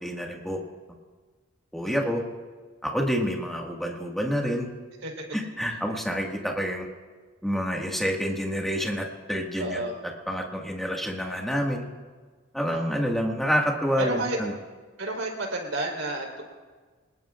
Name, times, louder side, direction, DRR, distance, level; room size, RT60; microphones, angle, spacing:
voice 1, 0.0-0.6 1.7-2.2 2.8-4.7 5.3-6.9 7.4-9.8 10.3-11.9 12.5-14.5, equal, ahead, -1 dB, 1.9 m, -28 dB
voice 2, 1.8-2.2 5.0-5.2 9.6-9.9 14.0-14.4 15.0-16.4, right 2 dB, 75° right, 0 dB, 4.1 m, -31 dB
26.5 x 19.5 x 2.5 m, 1.4 s
head